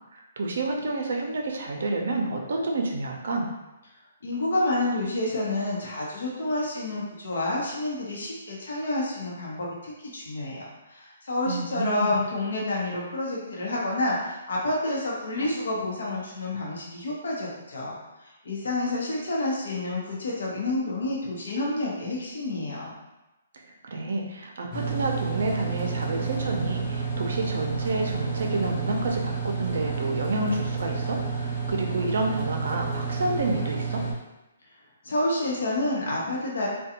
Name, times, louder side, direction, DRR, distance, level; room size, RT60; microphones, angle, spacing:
voice 1, 0.1-3.5 11.5-12.1 23.8-34.0, right 2 dB, 65° right, 1 dB, 0.5 m, -29 dB
voice 2, 4.2-22.9 35.0-36.7, left 2 dB, 75° left, -4 dB, 0.7 m, -29 dB
sound 1, 24.7-34.1, right 5 dB, 25° left, 0.6 m, -30 dB
2.5 x 2.2 x 2.8 m, 1.0 s
hypercardioid pair, 165°, 0 cm